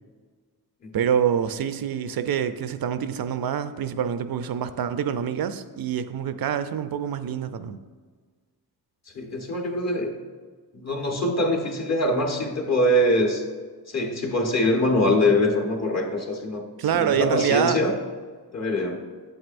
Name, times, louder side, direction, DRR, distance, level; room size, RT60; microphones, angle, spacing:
voice 1, 0.9-7.8 16.8-17.8, right 8 dB, 65° right, 11 dB, 0.5 m, -26 dB
voice 2, 9.1-10.2 10.7-13.4 13.9-16.6 17.0-17.9 18.5-19.0, left 1 dB, 40° left, 2 dB, 1.2 m, -23 dB
8.1 x 7.8 x 2.6 m, 1.5 s
wide cardioid pair, 90°, 39 cm